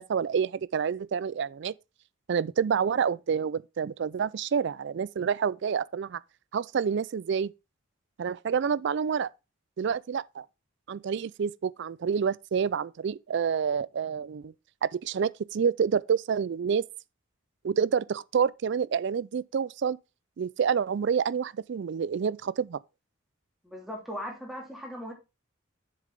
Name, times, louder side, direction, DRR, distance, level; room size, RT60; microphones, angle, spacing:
voice 1, 0.0-1.7 2.3-6.2 6.5-7.5 8.2-9.3 9.8-10.4 10.9-14.5 14.8-16.9 17.6-20.0 20.4-22.8, right 6 dB, 60° right, 0.4 m, -28 dB
voice 2, 23.6-25.1, equal, ahead, 2.9 m, -38 dB
7.5 x 6.8 x 3.4 m
head